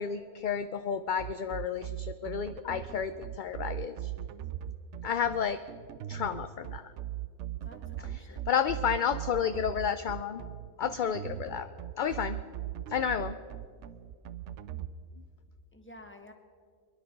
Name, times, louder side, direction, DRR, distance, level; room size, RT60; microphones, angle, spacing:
voice 1, 0.0-4.1 5.0-5.6 6.1-6.8 8.5-10.4 10.8-11.7 12.0-12.4 12.9-13.4, left 7 dB, 55° left, 10 dB, 0.6 m, -31 dB
sound 1, 1.2-14.9, right 12 dB, 90° right, 0.9 m, -39 dB
voice 2, 7.6-9.1 15.7-16.3, left 1 dB, 10° left, 4 dB, 1.4 m, -52 dB
23.5 x 11.0 x 5.3 m, 2.1 s
omnidirectional pair, 1.2 m